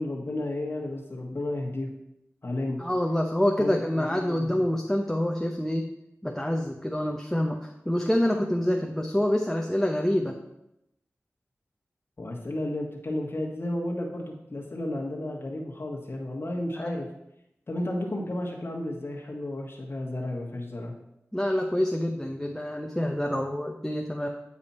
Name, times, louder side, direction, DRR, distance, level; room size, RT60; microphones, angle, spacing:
voice 1, 0.0-1.9 2.4-2.8 3.6-4.7 12.2-17.1 17.7-20.9, left 1 dB, 50° left, -2 dB, 1.5 m, -32 dB
voice 2, 2.8-5.9 6.2-10.4 16.8-17.0 21.3-24.3, left 1 dB, 10° left, 2 dB, 0.8 m, -27 dB
8.6 x 4.9 x 4.3 m, 0.84 s
cardioid pair, 45°, 5 cm